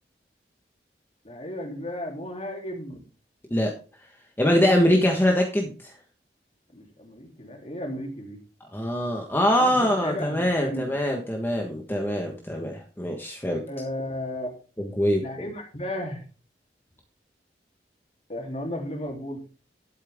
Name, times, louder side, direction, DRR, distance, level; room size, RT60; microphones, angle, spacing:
voice 1, 1.2-3.0 6.7-8.4 9.6-10.9 13.7-14.5 15.2-16.2 18.3-19.4, left 1 dB, 35° left, 1 dB, 3.4 m, -34 dB
voice 2, 4.4-5.9 8.7-13.6 14.8-15.5, equal, 10° left, 1 dB, 1.4 m, -23 dB
11.5 x 9.0 x 3.7 m, 0.37 s
head